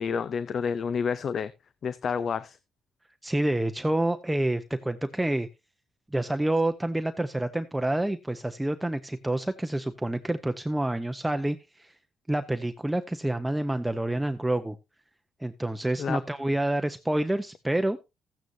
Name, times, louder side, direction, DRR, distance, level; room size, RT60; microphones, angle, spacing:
voice 1, 0.0-1.5 1.8-2.6 16.0-16.2, left 6 dB, 55° left, 0.6 m, -29 dB
voice 2, 3.2-5.5 6.1-11.9 12.3-14.8 15.4-18.0, right 1 dB, 10° right, 0.7 m, -28 dB
14.0 x 9.2 x 2.7 m
cardioid pair, 90°, 0 cm